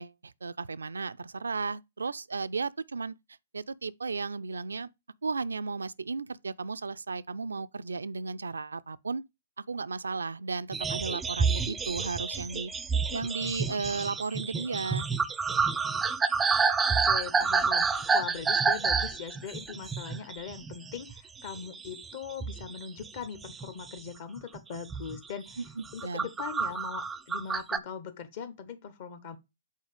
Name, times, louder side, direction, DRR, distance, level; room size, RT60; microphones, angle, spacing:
voice 1, 0.0-3.1 3.5-4.9 5.2-9.2 9.6-12.7 13.1-15.1 25.6-26.3, right 4 dB, 80° right, 0.3 m, -34 dB
sound 1, 10.7-21.2 21.4-22.1 22.4-23.9 24.4-24.6 24.9-25.2 25.7-27.8, right 5 dB, 10° right, 0.4 m, -29 dB
voice 2, 16.9-25.6 25.9-29.4, left 7 dB, 50° left, 0.8 m, -40 dB
5.5 x 4.3 x 5.0 m
hypercardioid pair, 125°, 0 cm